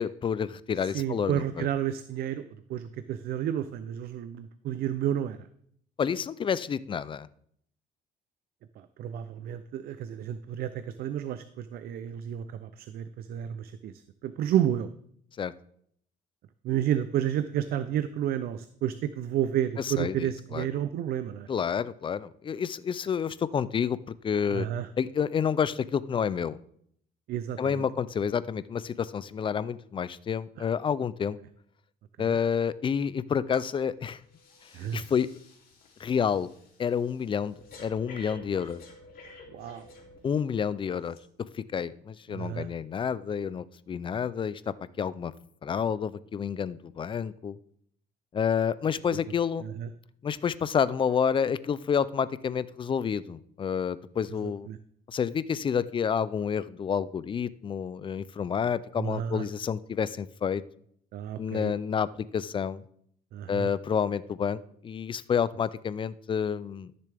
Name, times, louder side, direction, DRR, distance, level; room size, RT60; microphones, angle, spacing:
voice 1, 0.0-1.7 6.0-7.3 15.4-15.5 19.8-20.7 21.5-24.0 24.2-24.7 25.0-26.6 27.6-31.4 32.2-34.2 34.9-35.3 36.0-36.5 36.8-38.8 40.2-41.2 41.7-45.3 45.6-47.6 48.3-49.6 50.2-54.7 55.1-60.6 61.4-62.8 63.5-66.9, left 7 dB, 30° left, 17 dB, 0.4 m, -29 dB
voice 2, 0.8-2.4 2.7-5.5 8.8-13.9 14.2-14.9 16.6-21.5 24.5-24.9 27.3-27.8 32.2-32.4 34.7-35.1 39.5-39.9 42.3-42.7 49.6-49.9 54.7-54.8 59.0-59.4 61.1-61.7 63.3-63.7, right 10 dB, 65° right, 12 dB, 0.5 m, -31 dB
Breathing, 33.5-33.7 34.0-40.5 41.1-41.2, left 3 dB, 60° left, 2.7 m, -51 dB
13.5 x 6.7 x 3.4 m, 0.67 s
cardioid pair, 110°, 17 cm